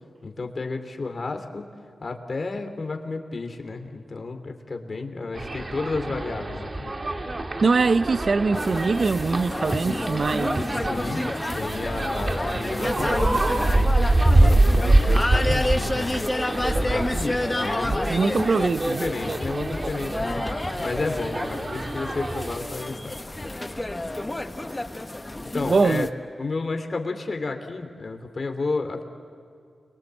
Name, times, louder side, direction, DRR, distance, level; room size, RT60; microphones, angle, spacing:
voice 1, 0.2-1.7 2.0-6.9 10.8-16.3 16.8-18.7 19.0-20.4 20.8-23.2 25.5-26.1 26.4-29.0, left 3 dB, 50° left, 3.3 m, -32 dB
sound 1, 5.3-22.6, right 2 dB, 40° right, 2.0 m, -25 dB
voice 2, 7.6-10.6 18.1-19.0 25.7-26.1, right 4 dB, 60° right, 0.7 m, -22 dB
sound 2, 8.5-26.1, left 1 dB, 20° left, 1.3 m, -30 dB
29.5 x 23.5 x 8.3 m
cardioid pair, 55°, 0 cm